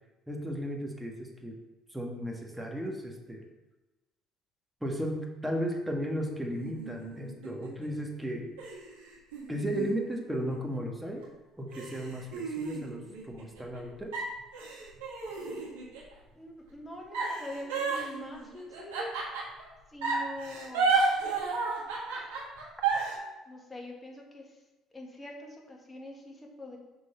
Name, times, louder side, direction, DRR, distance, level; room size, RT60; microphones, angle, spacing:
voice 1, 0.3-1.5 1.9-3.4 4.8-8.5 9.5-11.2 11.6-14.1, equal, 10° right, 1 dB, 1.5 m, -35 dB
sound 1, 6.5-7.9 8.6-10.8 11.2-11.3 11.7-13.8 14.1-16.1 17.1-19.6 20.0-23.1, right 4 dB, 85° right, 1.9 m, -32 dB
voice 2, 16.3-19.1 19.9-21.0 23.5-24.4 24.9-26.8, left 1 dB, 20° left, 1 dB, 1.8 m, -43 dB
6.3 x 3.9 x 5.5 m, 1.1 s
hypercardioid pair, 65°, 0 cm